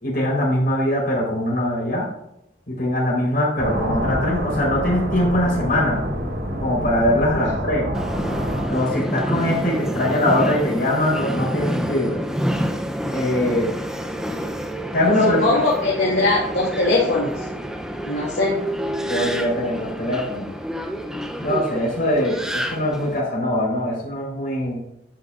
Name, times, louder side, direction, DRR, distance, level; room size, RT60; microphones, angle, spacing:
voice 1, 0.0-2.1 2.7-6.0 6.6-7.9 8.7-12.2 13.1-13.7 14.9-15.4 19.1-20.5 21.4-24.8, left 1 dB, 50° left, -3 dB, 4.1 m, -22 dB
sound 1, 3.6-8.7, equal, 75° right, 4.0 m, -27 dB
Subway metro underground, 7.9-23.2, equal, 5° right, 0.6 m, -28 dB
voice 2, 15.2-17.3 18.0-18.6, left 2 dB, 75° left, -5 dB, 2.4 m, -20 dB
12.0 x 9.1 x 2.5 m, 0.80 s
head